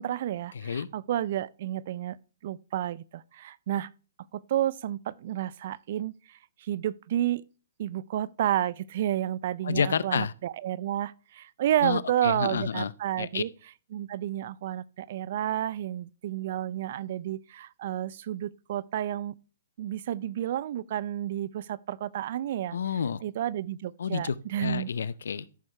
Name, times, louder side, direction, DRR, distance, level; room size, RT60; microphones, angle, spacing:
voice 1, 0.0-2.2 2.4-3.9 4.3-7.4 7.8-13.5 13.9-19.4 19.8-22.8 23.2-24.9, right 12 dB, 55° right, 0.4 m, -31 dB
voice 2, 9.6-10.3 11.8-12.9 13.2-13.4 22.7-23.2 24.0-25.5, left 6 dB, 75° left, 0.6 m, -29 dB
14.0 x 6.4 x 3.3 m
hypercardioid pair, 140°, 0 cm